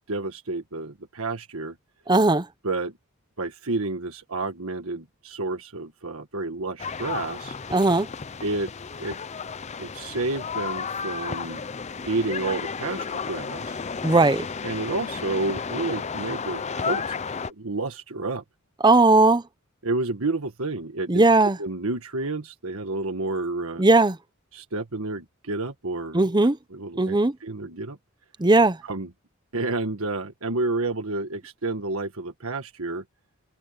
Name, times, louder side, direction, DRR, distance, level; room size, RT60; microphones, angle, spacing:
voice 1, 0.1-1.7 2.6-3.0 3.4-7.6 8.4-8.7 9.0-9.2 9.8-11.6 12.0-13.8 14.6-17.2 17.5-18.4 19.8-21.2 21.6-23.8 24.5-26.2 26.7-28.0 28.8-29.1 29.5-33.0, right 2 dB, 85° right, 1.5 m, -30 dB
voice 2, 2.1-2.5 7.7-8.1 14.0-14.4 18.8-19.4 21.1-21.6 23.8-24.2 26.1-26.6 27.0-27.3 28.4-28.8, right 2 dB, 20° right, 0.8 m, -18 dB
sound 1, 6.8-17.5, left 5 dB, 35° left, 0.6 m, -33 dB
head